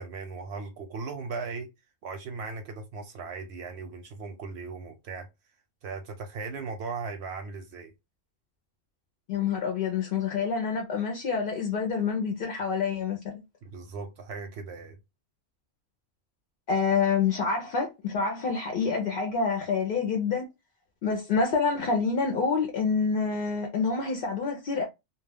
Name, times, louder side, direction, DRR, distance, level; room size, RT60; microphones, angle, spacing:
voice 1, 0.0-1.7 2.0-5.3 5.8-7.9 13.6-15.0, right 4 dB, 65° right, 0.7 m, -38 dB
voice 2, 9.3-13.3 16.7-20.4 21.0-24.8, left 5 dB, 55° left, 0.6 m, -27 dB
2.2 x 2.2 x 3.4 m
omnidirectional pair, 1.3 m